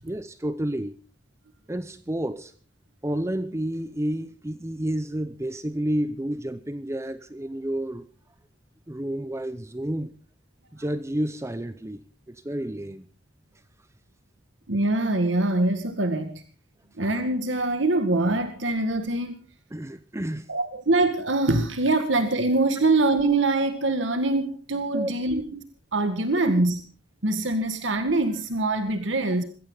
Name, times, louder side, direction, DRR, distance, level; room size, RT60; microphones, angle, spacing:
voice 1, 0.0-0.9 1.7-2.5 3.0-8.0 8.9-10.2 10.7-13.0 19.7-20.5 24.9-25.1, right 1 dB, 15° right, 0.7 m, -30 dB
voice 2, 14.7-16.4 17.0-19.4 20.5-25.6 25.9-26.8 27.2-29.4, right 2 dB, 85° right, 2.0 m, -24 dB
22.0 x 16.0 x 4.0 m
head